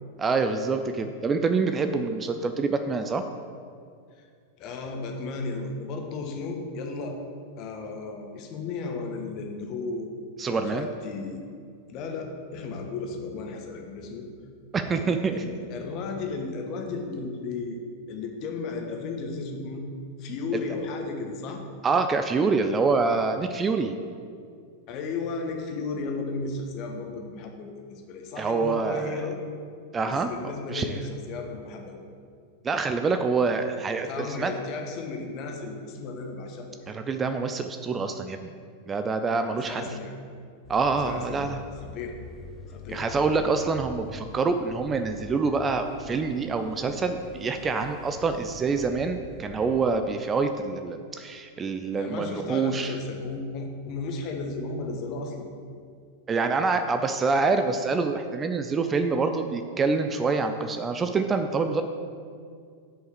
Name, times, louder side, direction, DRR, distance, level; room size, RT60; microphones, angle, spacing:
voice 1, 0.2-3.2 10.4-10.9 14.7-15.4 20.5-20.6 21.8-23.9 28.4-29.3 29.9-30.3 30.7-31.0 32.6-34.5 36.9-38.5 38.9-39.9 40.7-41.6 42.9-52.9 56.3-61.8, right 4 dB, 20° right, 7 dB, 0.5 m, -26 dB
voice 2, 4.6-7.2 7.6-10.1 10.5-11.4 11.9-14.3 14.8-17.8 18.1-19.8 20.2-21.6 24.9-29.4 30.0-32.0 34.0-36.9 39.7-40.1 41.0-41.5 41.8-42.1 42.7-43.1 43.3-43.4 51.9-55.5, left 4 dB, 40° left, 2 dB, 1.3 m, -34 dB
sound 1, 40.6-49.8, left 4 dB, 20° left, 0.7 m, -45 dB
7.3 x 5.5 x 7.0 m, 2.2 s
figure-of-eight pair, 90°, 0 cm